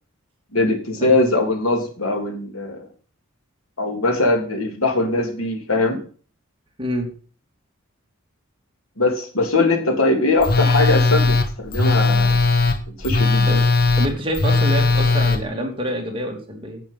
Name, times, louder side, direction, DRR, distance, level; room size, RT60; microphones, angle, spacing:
voice 1, 0.5-2.8 3.8-6.0 9.0-12.4 13.0-13.6, left 2 dB, 90° left, 4 dB, 3.2 m, -21 dB
voice 2, 6.8-7.1 13.5-13.6 14.0-16.8, equal, 25° right, 1 dB, 2.9 m, -26 dB
Telephone, 10.4-15.4, left 3 dB, 45° left, 1.3 m, -18 dB
10.0 x 9.0 x 5.5 m, 0.41 s
head